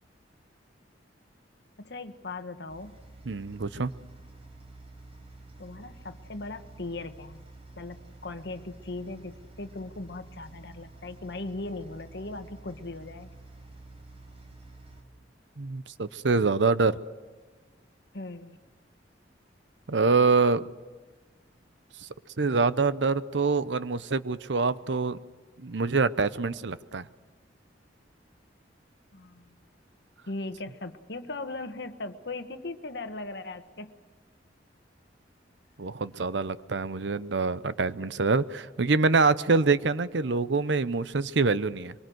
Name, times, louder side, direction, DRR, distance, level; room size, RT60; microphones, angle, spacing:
voice 1, 1.8-3.0 5.6-7.4 7.8-13.3 18.1-18.6 29.1-29.6 30.3-33.9, left 2 dB, 65° left, 9 dB, 1.4 m, -38 dB
sound 1, 2.7-15.0, right 2 dB, 35° right, 4.9 m, -49 dB
voice 2, 3.3-3.9 15.6-17.0 19.9-20.6 22.0-22.1 22.4-25.2 25.6-27.1 35.8-41.9, right 4 dB, 75° right, 15 dB, 0.8 m, -25 dB
24.0 x 23.0 x 7.9 m, 1.3 s
head